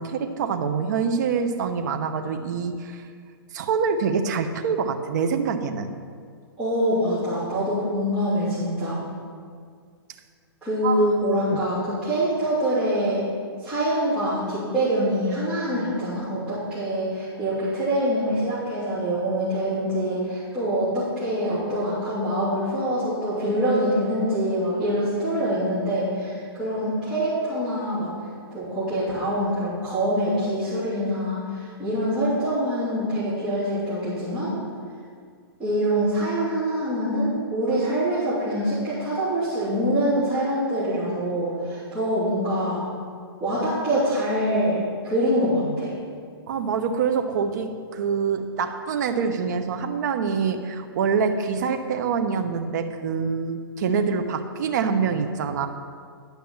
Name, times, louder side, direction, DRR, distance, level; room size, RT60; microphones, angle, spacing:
voice 1, 0.0-3.0 3.5-5.9 10.8-11.0 11.5-11.6 46.5-55.7, right 6 dB, 45° right, 6 dB, 0.8 m, -25 dB
voice 2, 6.6-9.0 10.6-13.2 13.6-28.1 28.5-34.5 35.6-42.8 43.4-45.9, equal, 10° right, -16 dB, 3.2 m, -25 dB
10.5 x 5.8 x 7.1 m, 2.1 s
hypercardioid pair, 160°, 13 cm